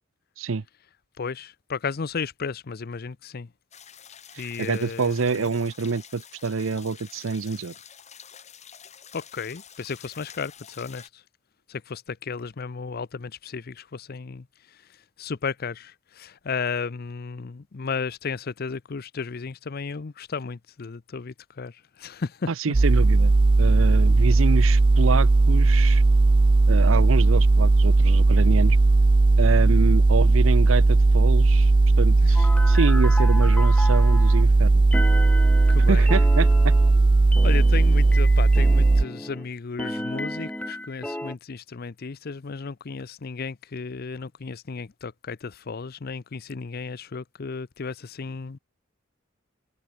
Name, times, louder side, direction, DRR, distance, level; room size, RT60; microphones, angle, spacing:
voice 1, 1.2-3.5 4.4-5.5 9.1-11.2 11.7-22.5 32.2-32.4 34.1-34.3 35.7-36.1 37.4-48.6, left 5 dB, 50° left, 0.6 m, -34 dB
sound 1, 3.7-11.1, left 8 dB, 35° left, 2.5 m, -48 dB
voice 2, 4.3-7.7 22.5-26.0 26.7-28.8 29.4-31.7 32.0-34.8 35.9-36.7, right 4 dB, 80° right, 0.7 m, -27 dB
sound 2, 22.7-39.0, right 3 dB, 25° right, 0.3 m, -17 dB
sound 3, 32.3-34.4 34.9-39.5 39.8-41.3, left 1 dB, 5° left, 2.5 m, -34 dB
head